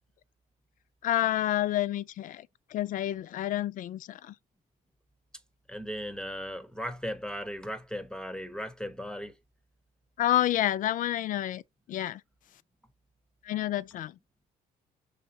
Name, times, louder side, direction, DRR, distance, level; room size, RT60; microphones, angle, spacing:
voice 1, 1.0-4.3 10.2-11.6 11.9-12.2 13.4-14.2, left 13 dB, 50° left, 0.4 m, -29 dB
voice 2, 5.7-9.3, equal, 5° left, 0.6 m, -37 dB
5.6 x 3.4 x 2.7 m
cardioid pair, 110°, 17 cm